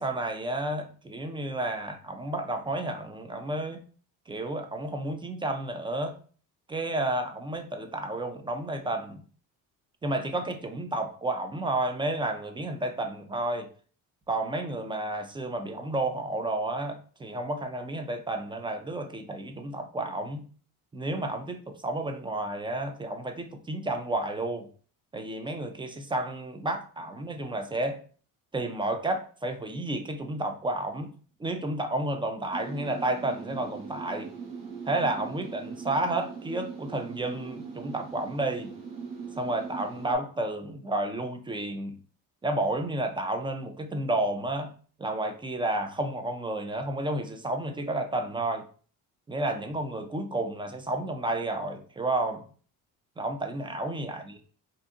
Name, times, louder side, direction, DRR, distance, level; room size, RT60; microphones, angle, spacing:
voice 1, 0.0-3.8 4.3-6.1 6.7-9.2 10.0-13.7 14.3-20.4 20.9-24.7 25.1-28.0 28.5-31.1 31.4-34.3 34.9-38.7 39.4-42.0 42.4-44.7 45.0-48.7 49.3-52.4 53.2-54.3, right 2 dB, 15° right, 6 dB, 0.3 m, -31 dB
sound 1, 32.5-40.2, right 5 dB, 55° right, 1.0 m, -40 dB
2.6 x 2.5 x 2.4 m, 0.42 s
supercardioid pair, 70°, 40 cm